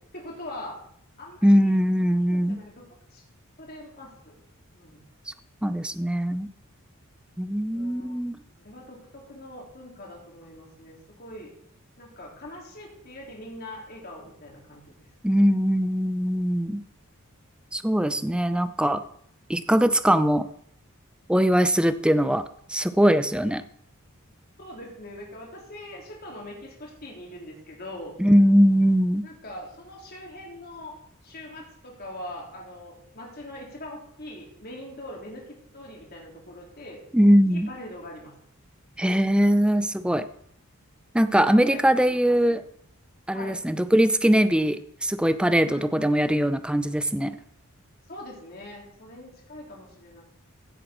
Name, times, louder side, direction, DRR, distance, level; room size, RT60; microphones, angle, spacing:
voice 1, 0.1-0.8 1.2-3.2 3.6-4.3 4.7-5.0 7.7-8.2 8.6-11.5 12.0-14.9 24.6-28.1 29.2-30.9 31.2-37.0 37.5-38.3 41.2-42.2 43.3-43.6 45.6-46.2 48.1-50.2, left 1 dB, 45° left, -2 dB, 3.6 m, -42 dB
voice 2, 1.4-2.6 5.3-5.4 5.6-6.5 7.4-8.4 15.2-16.8 17.7-19.0 19.5-20.5 21.3-23.6 28.2-29.2 37.1-37.7 39.0-40.3 41.1-42.6 43.3-47.4, equal, 5° right, 12 dB, 0.5 m, -21 dB
16.0 x 8.4 x 4.5 m, 0.68 s
head